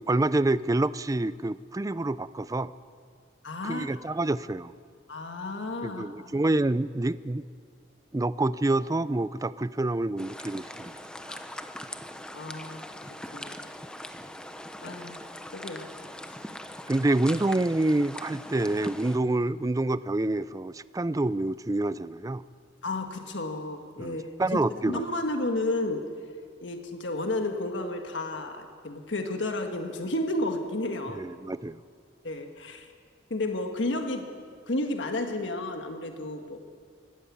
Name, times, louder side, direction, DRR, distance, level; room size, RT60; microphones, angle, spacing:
voice 1, 0.0-2.7 3.6-4.7 5.8-7.4 8.1-10.9 16.9-22.4 24.0-25.1 31.2-31.8, right 2 dB, 20° right, 16 dB, 0.4 m, -27 dB
voice 2, 3.4-4.0 5.1-6.3 11.3-11.4 12.3-13.7 14.8-15.2 15.5-15.9 22.8-26.0 26.6-31.2 32.2-32.9 33.3-36.6, left 2 dB, 85° left, 5 dB, 1.5 m, -32 dB
sound 1, 10.2-19.2, left 1 dB, 5° left, 0.9 m, -41 dB
20.0 x 16.0 x 8.5 m, 2.1 s
head